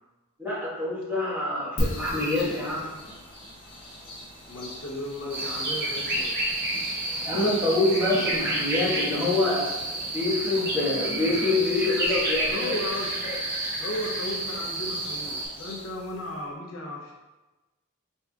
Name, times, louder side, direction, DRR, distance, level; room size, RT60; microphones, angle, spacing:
voice 1, 0.4-2.9 7.2-9.7 10.1-12.7 13.2-13.3, left 2 dB, 10° right, -10 dB, 1.3 m, -26 dB
sound 1, 1.8-16.5, equal, 60° left, 1.1 m, -41 dB
sound 2, 2.3-15.9, left 1 dB, 25° left, 0.7 m, -44 dB
voice 2, 4.5-6.4 12.5-13.3 13.8-17.1, left 1 dB, 75° left, -2 dB, 0.7 m, -35 dB
sound 3, 5.3-15.5, right 1 dB, 50° right, 0.7 m, -30 dB
4.2 x 3.4 x 2.3 m, 1.1 s
head